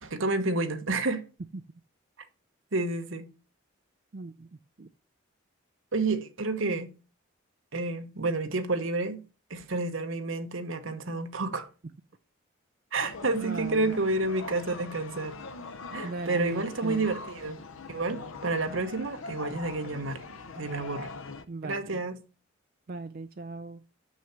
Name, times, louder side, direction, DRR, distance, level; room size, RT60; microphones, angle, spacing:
voice 1, 0.0-1.2 2.7-3.3 5.9-6.9 7.7-9.2 9.5-11.7 12.9-15.3 15.9-17.6 17.9-20.2 20.6-21.1 21.6-22.2, right 2 dB, 70° right, 1.2 m, -30 dB
voice 2, 4.1-4.5 4.8-4.9 13.4-13.9 16.0-17.1 21.5-22.0 22.9-23.8, right 3 dB, 45° right, 0.4 m, -38 dB
sound 1, 13.0-21.4, left 3 dB, 80° left, 0.8 m, -42 dB
6.7 x 6.3 x 6.0 m
head